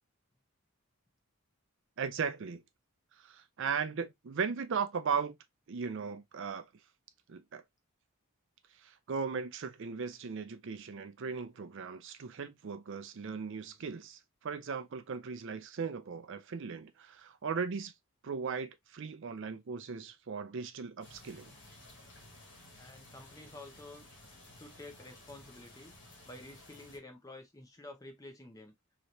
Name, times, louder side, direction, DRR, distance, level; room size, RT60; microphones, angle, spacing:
voice 1, 2.0-2.6 3.2-5.4 5.7-6.6 7.3-7.6 8.8-17.9 18.2-21.5, right 5 dB, 55° right, 0.5 m, -37 dB
sound 1, 21.0-27.0, left 1 dB, 55° left, 1.4 m, -55 dB
voice 2, 22.8-24.0 24.5-25.9 26.3-28.7, left 2 dB, 15° left, 0.7 m, -50 dB
3.2 x 2.9 x 2.6 m
head